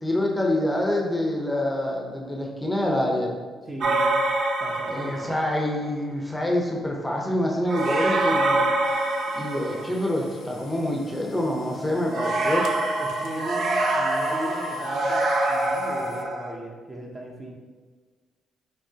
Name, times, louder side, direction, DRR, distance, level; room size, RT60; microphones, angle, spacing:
voice 1, 0.0-3.3 4.9-8.7 9.3-12.7, left 1 dB, 10° left, -1 dB, 0.7 m, -26 dB
voice 2, 3.6-4.1 4.6-5.3 13.0-17.5, right 1 dB, 25° right, -1 dB, 0.8 m, -37 dB
sound 1, 3.8-5.6 7.7-10.2 12.1-16.5, right 2 dB, 70° right, 0.7 m, -25 dB
sound 2, 8.8-16.2, left 6 dB, 70° left, 0.5 m, -45 dB
6.3 x 2.9 x 2.8 m, 1.4 s
cardioid pair, 90°, 0 cm